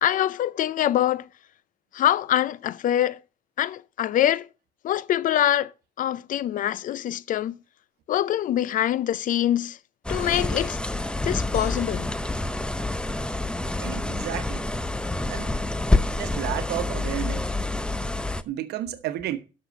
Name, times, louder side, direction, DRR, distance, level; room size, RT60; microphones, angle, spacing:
voice 1, 0.0-1.2 1.9-3.2 3.6-4.5 4.8-5.7 6.0-7.6 8.1-9.8 10.1-10.8 11.2-12.1, left 11 dB, 50° left, 0.4 m, -24 dB
sound 1, 10.0-18.4, left 2 dB, 5° left, 0.6 m, -27 dB
sound 2, 11.5-13.4, left 3 dB, 80° left, 4.0 m, -49 dB
voice 2, 13.8-14.7 15.3-15.6 16.0-17.5 18.5-19.4, right 13 dB, 75° right, 1.2 m, -32 dB
12.0 x 6.4 x 5.2 m
cardioid pair, 110°, 17 cm